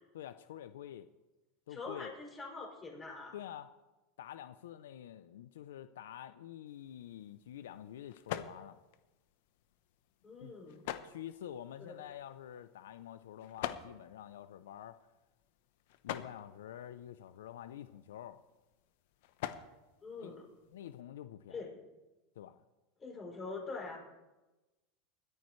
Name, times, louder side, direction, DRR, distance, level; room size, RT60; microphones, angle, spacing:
voice 1, 0.1-1.1 1.7-2.1 3.3-3.7 4.2-8.8 10.4-10.5 11.0-15.1 16.0-18.4 20.2-20.4 20.7-21.7 22.4-22.6, left 11 dB, 90° left, 12 dB, 0.6 m, -48 dB
voice 2, 1.7-3.4 10.2-10.8 11.8-11.9 20.0-20.5 21.5-21.7 23.0-24.0, left 3 dB, 20° left, -1 dB, 6.5 m, -44 dB
sound 1, 6.7-21.0, left 12 dB, 70° left, 0.9 m, -48 dB
20.5 x 14.0 x 3.2 m, 1.1 s
supercardioid pair, 125°, 0 cm